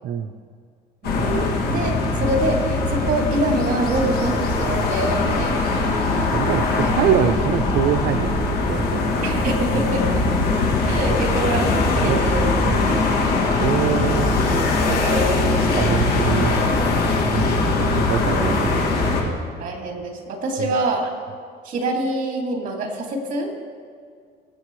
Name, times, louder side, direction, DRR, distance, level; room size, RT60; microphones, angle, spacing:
sound 1, 1.0-19.2, left 3 dB, 70° left, 2.1 m, -21 dB
voice 1, 1.0-5.5 9.2-10.0 10.8-12.5 14.8-15.8 17.0-17.3 19.6-21.1 21.6-23.5, right 1 dB, 50° right, 2 dB, 2.4 m, -25 dB
voice 2, 6.3-9.4 9.7-9.9 10.9-11.2 12.0-12.2 12.6-13.0 13.6-14.4 15.7-16.6 17.3-19.0 19.2-19.4, right 9 dB, 70° right, 5 dB, 0.6 m, -25 dB
23.5 x 8.3 x 3.2 m, 2.1 s
cardioid pair, 110°, 17 cm